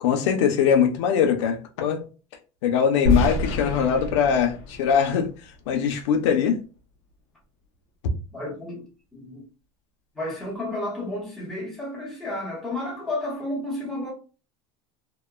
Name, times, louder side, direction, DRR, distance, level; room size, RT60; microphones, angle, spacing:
voice 1, 0.0-2.0 2.6-5.3 5.7-6.6, left 7 dB, 90° left, 0.6 m, -21 dB
sound 1, 3.1-6.0, left 2 dB, 55° left, 0.7 m, -27 dB
voice 2, 8.3-9.4 10.1-14.1, left 1 dB, ahead, 0.9 m, -32 dB
2.8 x 2.1 x 2.2 m
cardioid pair, 170°, 15 cm